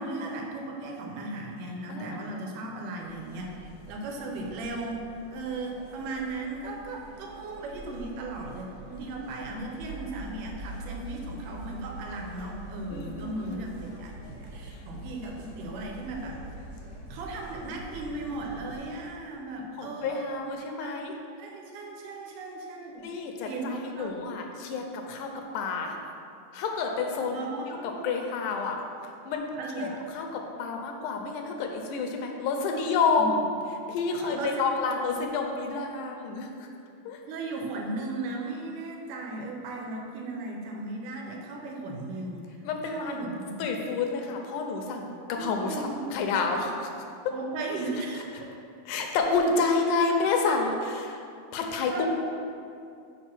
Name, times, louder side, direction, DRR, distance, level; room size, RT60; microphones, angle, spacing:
voice 1, 0.0-3.5 3.9-16.4 17.1-21.0 21.4-23.1 23.4-24.2 27.2-28.1 29.6-30.0 33.2-33.3 34.2-35.2 37.3-42.5 42.9-43.6 45.4-46.0 47.3-48.3 50.5-50.6 51.9-52.1, right 2 dB, 90° right, 0 dB, 2.4 m, -36 dB
sound 1, 3.0-18.8, right 1 dB, 40° right, 1.3 m, -44 dB
voice 2, 12.9-13.7 14.7-14.8 19.8-21.2 23.0-26.0 26.5-27.4 27.7-29.4 29.8-33.4 33.9-36.7 37.1-37.2 42.6-43.2 43.6-46.9 48.9-51.2 51.5-52.1, left 4 dB, 80° left, 3 dB, 2.2 m, -29 dB
5.4 x 4.9 x 5.9 m, 2.5 s
omnidirectional pair, 3.7 m